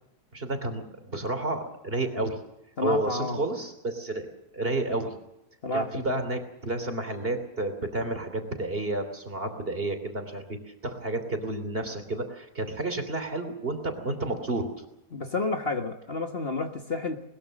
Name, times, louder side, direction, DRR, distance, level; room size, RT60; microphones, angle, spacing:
voice 1, 0.3-2.4 2.8-4.3 4.5-5.2 5.7-10.4 10.8-14.8, right 2 dB, 35° right, 7 dB, 3.3 m, -31 dB
voice 2, 2.8-3.4 5.6-6.0 15.1-17.2, left 3 dB, 40° left, 5 dB, 1.7 m, -30 dB
21.5 x 21.0 x 6.5 m, 0.86 s
omnidirectional pair, 1.6 m